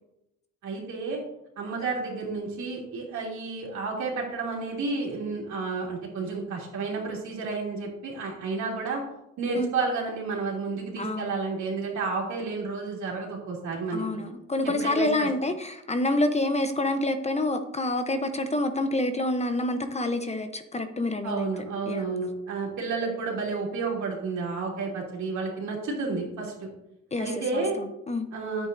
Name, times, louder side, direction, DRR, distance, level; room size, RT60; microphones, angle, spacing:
voice 1, 0.6-1.2 1.6-9.0 9.4-14.0 14.6-15.3 21.2-26.7 27.2-27.8 28.3-28.7, right 4 dB, 70° right, -2 dB, 2.8 m, -31 dB
voice 2, 11.0-11.4 13.9-21.5 21.9-22.0 27.1-28.3, left 2 dB, 20° left, 8 dB, 0.7 m, -28 dB
10.0 x 8.0 x 2.6 m, 0.87 s
cardioid pair, 90°, 30 cm